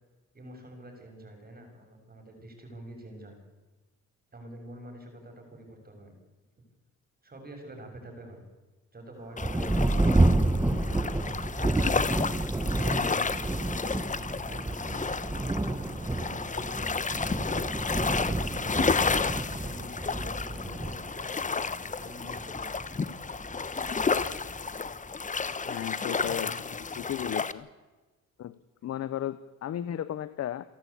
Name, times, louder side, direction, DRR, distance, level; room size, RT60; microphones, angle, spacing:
voice 1, 0.3-3.4 4.3-6.1 7.2-8.4 8.9-9.7 10.2-11.0 12.6-13.7 14.3-18.8 19.5-21.3 21.8-22.7 26.1-26.5 27.2-27.3 28.8-29.0, right 1 dB, 30° right, 4 dB, 6.9 m, -47 dB
sound 1, 9.4-27.5, left 5 dB, 25° left, 1.0 m, -32 dB
Thunder, 9.4-25.4 26.2-26.3 26.8-27.3, right 2 dB, 10° right, 1.3 m, -30 dB
voice 2, 25.7-26.5 27.0-27.7 28.4-30.6, left 11 dB, 55° left, 15 dB, 0.8 m, -35 dB
28.5 x 11.5 x 8.5 m, 1.2 s
cardioid pair, 90°, 30 cm